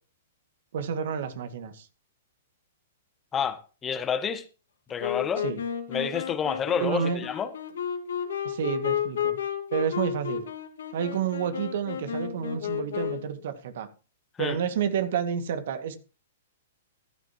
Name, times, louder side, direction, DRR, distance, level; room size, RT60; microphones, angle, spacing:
voice 1, 0.7-1.9 5.4-5.6 6.8-7.3 8.4-9.4 9.7-10.5 10.9-13.9 14.4-16.0, right 7 dB, 60° right, 2.0 m, -30 dB
voice 2, 3.3-4.4 4.9-5.4 5.9-7.5 14.4-14.6, left 7 dB, 20° left, 1.2 m, -29 dB
Wind instrument woodwind instrument, 5.0-13.4, left 9 dB, 70° left, 2.5 m, -32 dB
15.0 x 12.5 x 3.0 m
hypercardioid pair, 115°, 0 cm